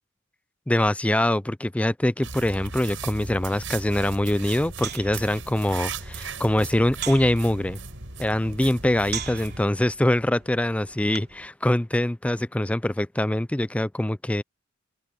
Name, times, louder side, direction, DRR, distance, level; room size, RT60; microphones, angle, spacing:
voice 1, 0.7-7.8 8.2-14.4, left 1 dB, 5° left, 0.4 m, -24 dB
sound 1, 2.2-9.6, right 4 dB, 75° right, 7.4 m, -37 dB
sound 2, 3.9-11.5, right 10 dB, 55° right, 3.0 m, -41 dB
open air
head